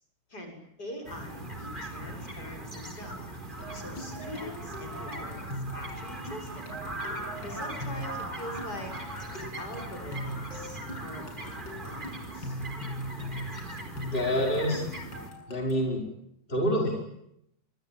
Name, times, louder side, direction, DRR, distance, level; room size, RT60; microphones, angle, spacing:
voice 1, 0.3-3.2 3.7-6.7 7.4-8.9 9.3-12.1 12.3-12.6, left 1 dB, 60° left, 3 dB, 7.5 m, -43 dB
sound 1, 1.0-15.3, right 1 dB, 25° right, 4.8 m, -39 dB
sound 2, 3.6-15.9, equal, 75° left, 8.0 m, -41 dB
voice 2, 14.0-14.8 15.5-16.0 16.5-17.0, equal, 25° left, 1 dB, 5.4 m, -27 dB
27.0 x 24.0 x 9.1 m, 0.77 s
omnidirectional pair, 2.0 m